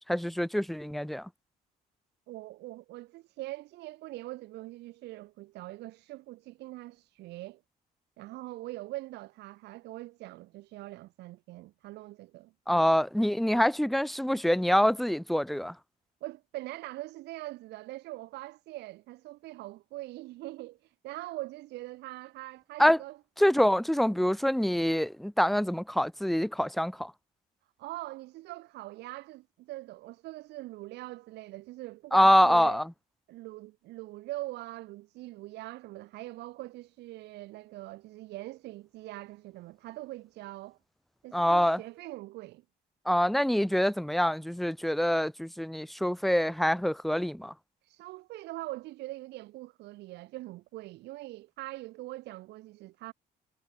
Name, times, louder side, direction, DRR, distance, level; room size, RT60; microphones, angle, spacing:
voice 1, 0.1-1.3 12.7-15.7 22.8-23.0 23.4-27.1 32.1-32.8 41.3-41.8 43.1-47.5, equal, ahead, 0.5 m, -25 dB
voice 2, 2.3-7.6 8.2-13.0 16.2-23.2 27.8-32.8 33.3-40.8 41.2-42.6 47.8-53.1, right 18 dB, 85° right, 3.0 m, -43 dB
cardioid pair, 110°, 17 cm